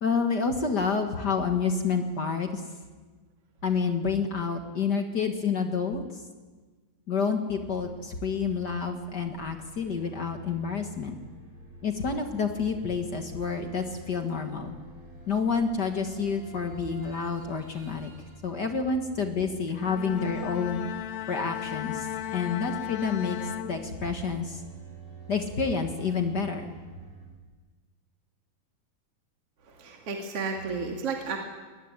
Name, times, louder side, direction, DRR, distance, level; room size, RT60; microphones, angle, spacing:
voice 1, 0.0-2.6 3.6-6.0 7.1-11.1 11.8-14.8 15.3-18.1 18.4-20.8 21.3-22.1 22.3-24.6 25.3-26.7, left 5 dB, 60° left, 5 dB, 1.1 m, -29 dB
sound 1, 7.6-27.3, right 2 dB, 60° right, 7.0 m, -49 dB
Bowed string instrument, 19.7-24.4, left 10 dB, 90° left, 1.5 m, -36 dB
voice 2, 29.7-31.4, right 4 dB, 45° right, 1 dB, 2.9 m, -32 dB
21.0 x 20.5 x 9.8 m, 1.4 s
omnidirectional pair, 4.4 m